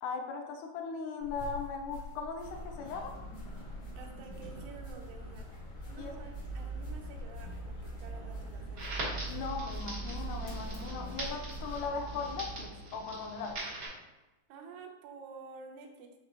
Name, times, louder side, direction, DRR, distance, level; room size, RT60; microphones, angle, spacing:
voice 1, 0.0-3.2 6.0-6.1 9.3-13.7, left 4 dB, 80° left, 5 dB, 2.0 m, -38 dB
sound 1, 1.2-11.9, left 2 dB, 60° left, 2.0 m, -47 dB
sound 2, 2.4-12.7, right 2 dB, 45° left, 1.3 m, -43 dB
voice 2, 4.0-5.5 5.9-9.0 14.5-16.1, right 4 dB, 80° right, 2 dB, 1.9 m, -50 dB
Crackle, 8.8-13.9, right 2 dB, 45° right, 1.4 m, -42 dB
5.7 x 3.3 x 2.8 m, 1.1 s
omnidirectional pair, 3.8 m